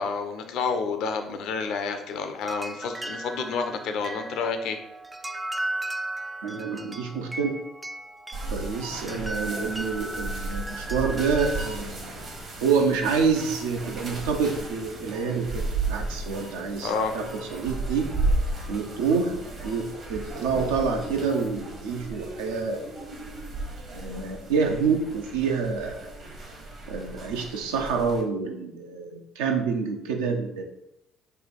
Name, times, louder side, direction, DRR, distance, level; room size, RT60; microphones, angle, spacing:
voice 1, 0.0-4.8 16.8-17.2, left 5 dB, 65° left, 6 dB, 0.5 m, -29 dB
sound 1, 2.4-11.7, right 1 dB, 15° right, 0.3 m, -36 dB
voice 2, 6.4-7.5 8.5-12.1 12.6-15.6 15.9-18.1 18.7-19.3 19.6-23.2 23.9-26.1 26.9-30.6, right 5 dB, 75° right, 3 dB, 0.5 m, -27 dB
sound 2, 8.3-28.2, right 2 dB, 50° right, 1.0 m, -34 dB
3.2 x 2.3 x 4.1 m, 0.83 s
hypercardioid pair, 50°, 0 cm